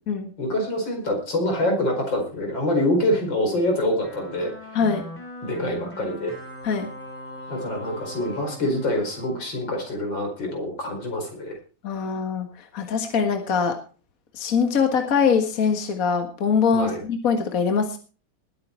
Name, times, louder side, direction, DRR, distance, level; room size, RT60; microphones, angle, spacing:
voice 1, 0.4-4.5 5.4-6.3 7.5-11.6 16.7-17.0, left 1 dB, 85° left, 3 dB, 5.4 m, -25 dB
sound 1, 4.0-10.2, left 1 dB, 5° left, 4.2 m, -40 dB
voice 2, 4.7-5.1 6.6-6.9 11.8-12.5 12.7-13.8 14.3-18.0, left 6 dB, 50° left, 5 dB, 2.0 m, -22 dB
20.0 x 9.1 x 4.5 m, 0.38 s
omnidirectional pair, 2.0 m